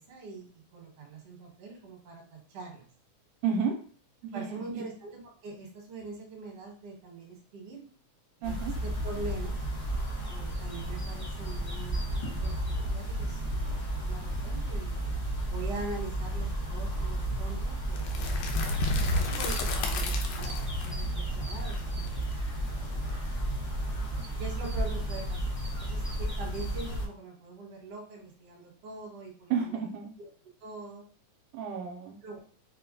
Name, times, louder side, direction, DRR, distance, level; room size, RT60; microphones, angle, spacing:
voice 1, 0.0-2.9 4.3-7.9 8.4-9.6 10.2-14.9 15.4-18.1 18.4-18.8 19.2-20.5 20.8-21.9 22.5-23.5 24.4-29.8 30.2-30.3 30.6-31.1 32.2-32.4, right 3 dB, 55° right, -1 dB, 2.1 m, -43 dB
voice 2, 3.4-3.7 4.3-4.8 8.4-8.7 29.5-30.1 31.5-32.2, right 6 dB, 85° right, 2 dB, 2.1 m, -31 dB
sound 1, 8.4-27.1, right 1 dB, 30° left, 0.7 m, -33 dB
sound 2, 17.9-23.8, left 2 dB, 90° left, 2.2 m, -33 dB
5.4 x 2.3 x 3.7 m, 0.43 s
omnidirectional pair, 3.6 m